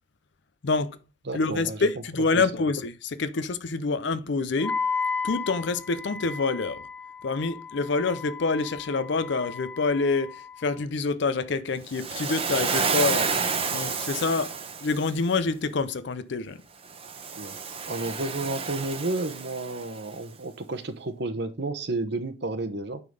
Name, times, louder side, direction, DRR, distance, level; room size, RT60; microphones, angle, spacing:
voice 1, 0.6-1.0 1.3-4.8 5.2-6.8 7.2-13.3 13.7-14.5 14.8-16.6, left 3 dB, 55° left, 0.5 m, -27 dB
voice 2, 1.3-1.8 2.3-2.7 17.3-17.6 17.9-23.0, right 2 dB, 55° right, 0.9 m, -31 dB
Wind instrument woodwind instrument, 4.6-10.8, left 5 dB, 10° left, 0.5 m, -34 dB
Waves surf, 11.9-15.1 16.9-20.0, right 5 dB, 25° right, 0.8 m, -30 dB
9.5 x 3.8 x 5.1 m
head